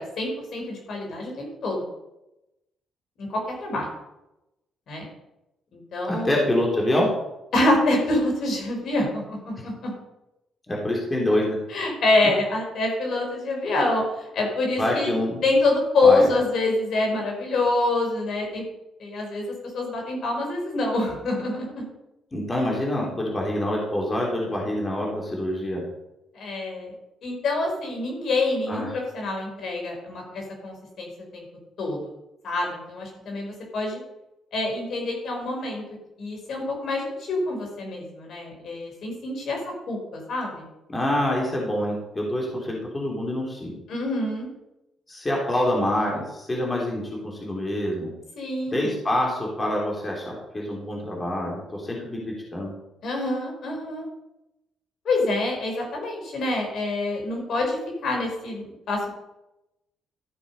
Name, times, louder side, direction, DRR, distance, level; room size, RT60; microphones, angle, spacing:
voice 1, 0.0-1.9 3.2-3.9 4.9-5.0 5.7-6.3 7.5-9.9 11.7-15.1 15.4-18.6 19.0-19.5 19.7-21.9 26.3-26.9 27.2-31.4 31.8-32.0 32.4-34.0 34.5-35.8 36.2-39.6 39.9-40.7 43.9-44.5 48.4-48.9 53.0-54.1 55.0-57.8 58.0-59.1, left 2 dB, 60° left, 0 dB, 4.8 m, -26 dB
voice 2, 6.1-7.1 10.7-11.6 14.8-15.4 16.0-16.3 22.3-25.8 28.7-29.0 40.9-43.7 45.1-48.1 48.7-52.7, left 1 dB, 20° left, -2 dB, 3.4 m, -26 dB
13.5 x 7.0 x 5.5 m, 0.91 s
cardioid pair, 90°, 0 cm